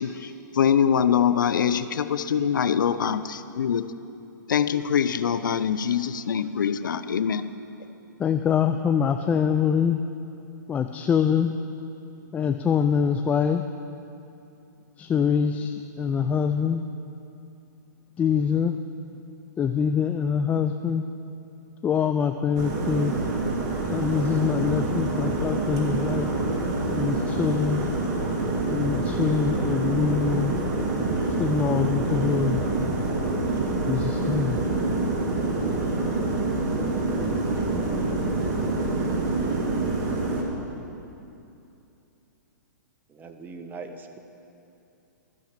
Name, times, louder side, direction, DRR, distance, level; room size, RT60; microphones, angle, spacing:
voice 1, 0.0-3.9 4.5-7.5, left 8 dB, 80° left, 13 dB, 0.5 m, -24 dB
voice 2, 8.2-10.0 10.7-11.6 12.3-13.6 15.0-16.8 18.2-18.8 19.6-21.1 21.8-23.2 23.9-26.3 26.9-27.8 28.7-30.6 31.4-32.6 33.9-34.6, left 7 dB, 15° left, 7 dB, 0.3 m, -24 dB
sound 1, 22.6-40.4, right 2 dB, 35° right, 1.9 m, -26 dB
voice 3, 43.1-44.2, right 4 dB, 15° right, 6 dB, 0.8 m, -40 dB
13.5 x 7.1 x 7.5 m, 2.8 s
hypercardioid pair, 130°, 10 cm